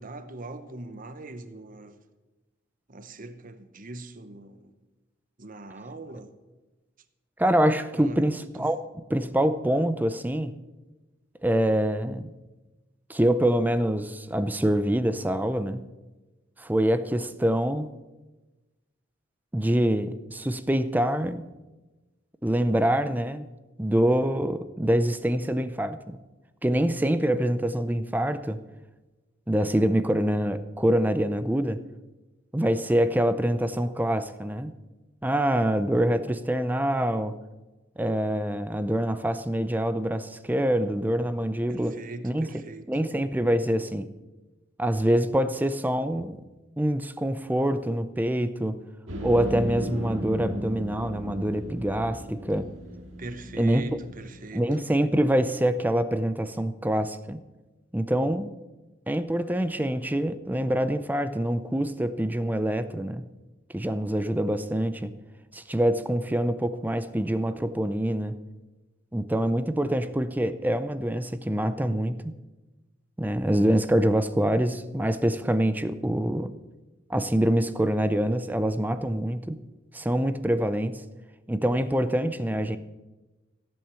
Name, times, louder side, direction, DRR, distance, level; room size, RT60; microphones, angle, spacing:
voice 1, 0.0-2.0 2.9-4.7 5.4-6.3 7.9-8.3 8.6-8.7 41.7-42.9 53.2-54.7, right 2 dB, 45° right, 1.0 m, -41 dB
voice 2, 7.4-10.6 11.4-12.2 13.1-15.8 16.6-17.9 19.5-21.4 22.4-23.5 23.8-26.2 26.6-28.6 29.5-31.8 32.5-34.7 35.2-37.4 38.0-42.0 42.2-42.5 42.9-44.1 44.8-46.4 46.8-48.8 49.2-52.7 53.6-54.0 54.5-57.4 57.9-58.5 59.1-63.2 63.7-65.1 65.5-68.4 69.1-72.3 73.2-76.5 77.1-79.6 79.9-81.0 81.5-82.8, right 1 dB, 10° right, 0.5 m, -25 dB
sound 1, 49.1-54.3, equal, 80° right, 2.1 m, -36 dB
15.5 x 8.7 x 6.9 m
head